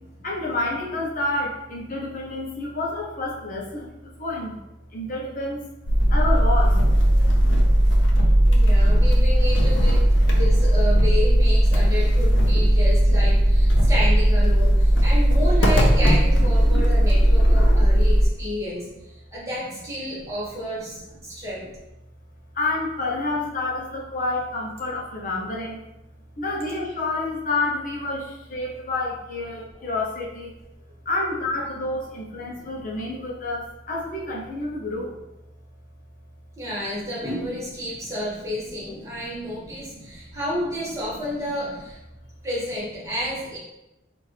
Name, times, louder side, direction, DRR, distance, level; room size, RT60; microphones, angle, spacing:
voice 1, 0.2-4.6 4.9-5.6 6.1-6.8 8.6-9.1 10.5-10.6 11.5-12.8 13.3-13.4 14.5-15.0 16.9-17.4 18.0-18.2 20.0-20.1 20.9-21.0 21.4-21.5 22.5-25.8 26.4-30.5 31.1-35.2 36.9-37.1 38.0-38.1 39.0-40.4 41.7-41.8, left 2 dB, 45° left, -2 dB, 0.7 m, -30 dB
sound 1, 5.9-18.3, equal, 90° left, 0.7 m, -17 dB
voice 2, 8.4-21.6 36.6-42.0 42.4-43.6, left 1 dB, 15° right, -8 dB, 1.3 m, -31 dB
4.4 x 2.6 x 3.2 m, 0.94 s
head